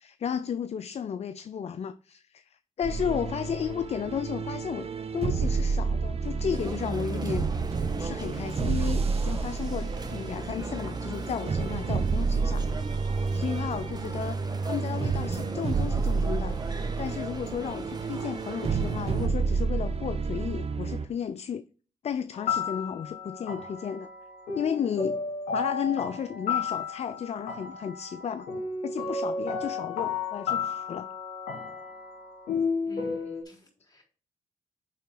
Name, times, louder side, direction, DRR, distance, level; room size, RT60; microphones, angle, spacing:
voice 1, 0.0-7.5 8.0-12.8 13.3-16.6 17.0-21.7 22.0-24.1 24.5-25.2 25.5-28.5 28.8-31.1, left 8 dB, 50° left, 0.4 m, -33 dB
sound 1, 2.8-21.1, right 4 dB, 45° right, 0.9 m, -30 dB
sound 2, 6.5-19.3, right 3 dB, 30° right, 1.4 m, -40 dB
sound 3, 22.3-33.4, left 5 dB, 80° left, 1.8 m, -33 dB
voice 2, 32.8-34.0, left 1 dB, 30° left, 4.0 m, -49 dB
9.5 x 3.8 x 4.6 m
supercardioid pair, 45°, 14 cm